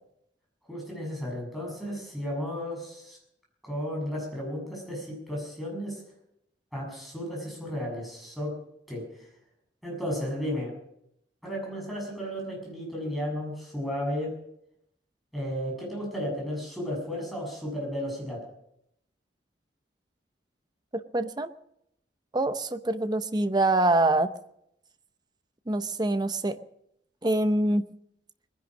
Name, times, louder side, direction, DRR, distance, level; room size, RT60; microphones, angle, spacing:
voice 1, 0.7-3.2 3.6-6.0 6.7-8.5 8.9-9.0 9.8-10.7 11.4-14.3 15.3-18.4, equal, ahead, -2 dB, 6.8 m, -33 dB
voice 2, 21.1-21.5 22.3-24.3 25.7-26.6 27.2-27.8, right 2 dB, 25° right, 11 dB, 0.7 m, -25 dB
21.0 x 10.5 x 6.2 m, 0.77 s
head